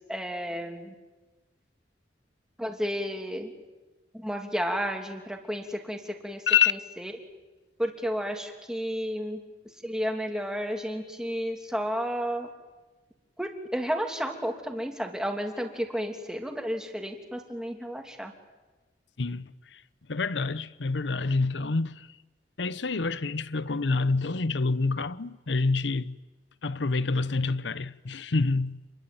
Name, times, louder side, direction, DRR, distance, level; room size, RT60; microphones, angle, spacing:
voice 1, 0.1-0.9 2.6-3.5 4.1-7.1 7.8-9.4 9.8-12.5 13.4-18.3, equal, 5° right, 2.9 m, -32 dB
voice 2, 19.2-19.8 20.1-22.1 22.6-26.2 26.6-28.8, left 4 dB, 75° left, 0.8 m, -27 dB
27.5 x 22.0 x 9.1 m
head